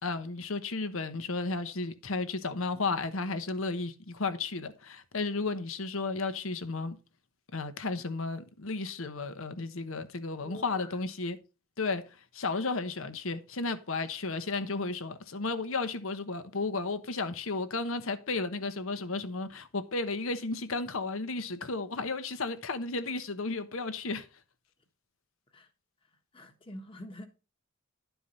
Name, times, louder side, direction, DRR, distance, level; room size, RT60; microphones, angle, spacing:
voice 1, 0.0-7.0 7.5-11.4 11.8-12.0 12.3-24.3, left 3 dB, 70° left, 1.0 m, -33 dB
voice 2, 10.4-11.0 25.5-25.7 26.3-27.3, left 1 dB, 25° left, 1.3 m, -46 dB
11.5 x 4.6 x 5.5 m
head